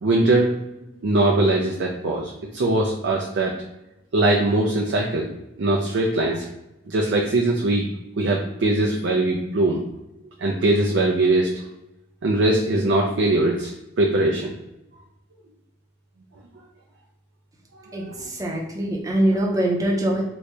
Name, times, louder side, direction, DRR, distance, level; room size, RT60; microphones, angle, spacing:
voice 1, 0.0-0.6 1.0-3.5 4.1-5.3 5.6-6.5 6.9-7.8 8.2-9.8 10.4-11.5 12.2-13.7 14.0-14.5 18.1-18.3, right 2 dB, 75° right, -2 dB, 0.5 m, -21 dB
voice 2, 17.9-20.2, right 1 dB, 20° right, -1 dB, 0.6 m, -23 dB
3.0 x 2.7 x 3.2 m, 0.90 s
head